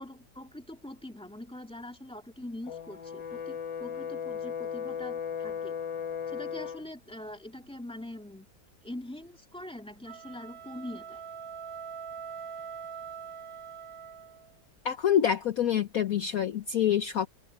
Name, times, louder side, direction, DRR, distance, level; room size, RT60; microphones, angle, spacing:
voice 1, 0.0-5.8 6.3-8.5 8.8-11.2, left 1 dB, 5° left, 2.4 m, -43 dB
Brass instrument, 2.7-6.9, left 7 dB, 80° left, 2.0 m, -36 dB
sound 1, 10.0-14.5, right 7 dB, 50° right, 4.3 m, -43 dB
voice 2, 14.8-17.3, left 9 dB, 55° left, 1.2 m, -26 dB
omnidirectional pair, 2.0 m